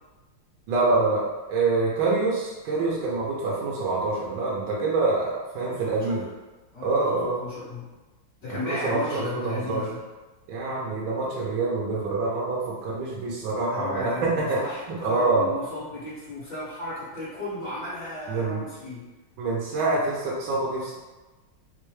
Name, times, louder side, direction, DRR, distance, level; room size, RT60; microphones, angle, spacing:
voice 1, 0.7-1.2 1.5-6.2 6.8-7.4 8.5-9.8 10.5-14.6 15.0-15.5 18.3-18.6 19.4-20.9, right 3 dB, 85° right, -5 dB, 1.5 m, -26 dB
voice 2, 5.7-6.2 6.7-7.9 8.4-10.0 13.7-19.1, left 2 dB, 40° left, -8 dB, 1.4 m, -35 dB
4.4 x 2.2 x 3.1 m, 1.2 s
omnidirectional pair, 2.2 m